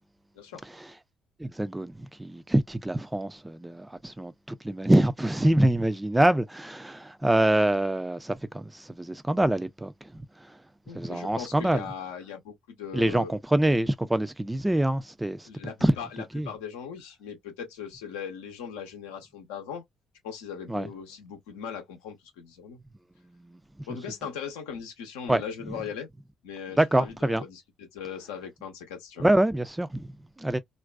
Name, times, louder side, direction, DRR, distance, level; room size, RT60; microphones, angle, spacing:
voice 1, 1.4-10.6 10.9-11.9 12.9-15.5 15.8-15.9 16.3-16.5 20.7-20.9 23.4-23.9 25.3-25.4 26.8-27.4 29.2-30.6, right 1 dB, 10° right, 0.4 m, -25 dB
voice 2, 10.9-13.3 15.5-19.8 20.2-22.8 23.9-26.1 26.4-29.2, left 7 dB, 75° left, 0.7 m, -39 dB
2.5 x 2.2 x 2.2 m
figure-of-eight pair, 45°, 0 cm